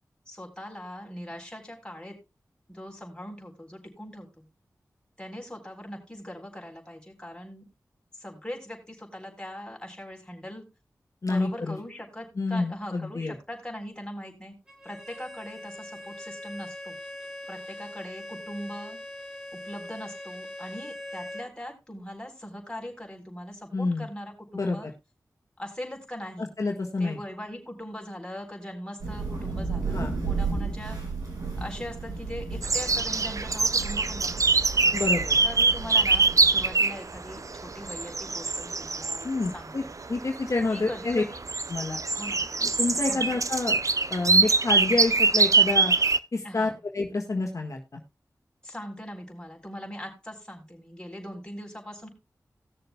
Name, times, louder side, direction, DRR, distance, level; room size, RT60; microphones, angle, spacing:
voice 1, 0.3-2.2 2.7-4.5 5.2-7.6 8.1-10.6 11.3-14.5 14.8-17.0 17.5-19.0 19.5-24.9 25.6-26.5 27.0-31.0 31.6-34.5 35.4-39.9 40.7-41.4 42.1-42.5 43.1-43.3 46.4-46.8 48.6-52.1, equal, 15° left, 1 dB, 4.0 m, -40 dB
voice 2, 11.2-11.8 12.3-13.3 23.7-24.1 24.5-24.9 26.4-27.2 29.9-30.1 34.9-35.4 39.2-39.8 40.1-41.2 41.7-42.0 42.6-43.8 44.1-45.9 46.3-48.0, left 3 dB, 55° left, 1 dB, 1.5 m, -28 dB
Bowed string instrument, 14.7-21.5, left 1 dB, 10° right, 4.0 m, -41 dB
Thunder / Rain, 29.0-36.7, right 4 dB, 80° right, 4.6 m, -34 dB
sound 1, 32.6-39.6 39.9-46.2, right 4 dB, 55° right, 0.6 m, -24 dB
19.0 x 6.7 x 2.2 m, 0.25 s
cardioid pair, 45°, 6 cm